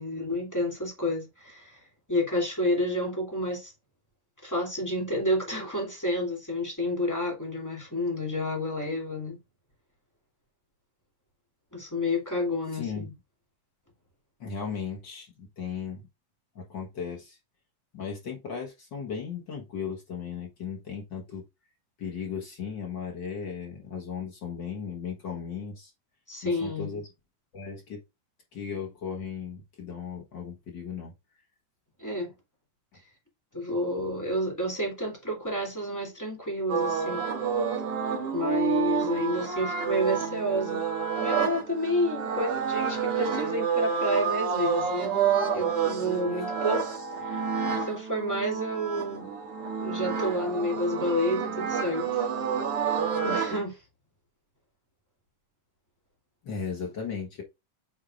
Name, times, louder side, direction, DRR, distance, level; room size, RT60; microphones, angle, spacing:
voice 1, 0.0-1.8 2.1-3.7 4.4-9.4 11.7-13.1 26.3-27.0 32.0-32.3 33.5-37.2 38.3-40.8 41.1-45.2 45.5-47.4 47.8-49.3 49.8-52.2 53.2-53.8, left 1 dB, 5° left, 2.7 m, -30 dB
voice 2, 12.7-13.1 14.4-16.1 16.5-17.4 17.9-21.4 22.0-25.9 26.4-27.1 27.5-28.0 28.5-31.1 47.7-47.9 56.4-57.4, left 6 dB, 50° left, 1.4 m, -36 dB
sound 1, 36.7-53.6, right 7 dB, 45° right, 3.2 m, -29 dB
8.2 x 4.6 x 2.5 m
omnidirectional pair, 3.7 m